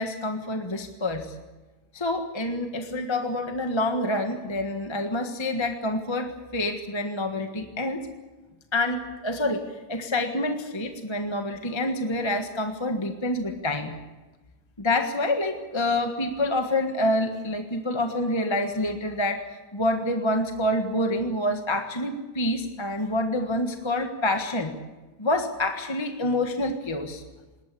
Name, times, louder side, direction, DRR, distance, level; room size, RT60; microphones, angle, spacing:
voice 1, 0.0-1.3 1.9-8.1 8.7-9.6 9.9-13.9 14.8-19.4 19.7-24.7 25.2-27.2, left 1 dB, 15° left, 5 dB, 1.5 m, -27 dB
21.5 x 19.0 x 8.5 m, 1.2 s
omnidirectional pair, 1.8 m